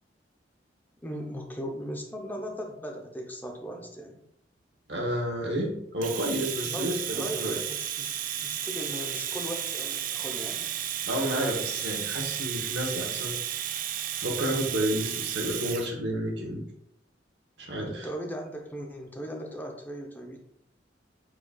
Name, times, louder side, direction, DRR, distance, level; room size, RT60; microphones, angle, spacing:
voice 1, 1.0-4.2 6.6-6.9 7.1-10.6 17.8-20.4, equal, 10° left, 1 dB, 0.6 m, -38 dB
voice 2, 4.9-7.6 11.1-13.3 14.2-16.6 17.6-18.1, equal, 70° right, 0 dB, 1.1 m, -30 dB
Domestic sounds home sounds, 6.0-15.9, right 10 dB, 50° right, 0.3 m, -33 dB
4.6 x 4.1 x 2.3 m, 0.76 s
head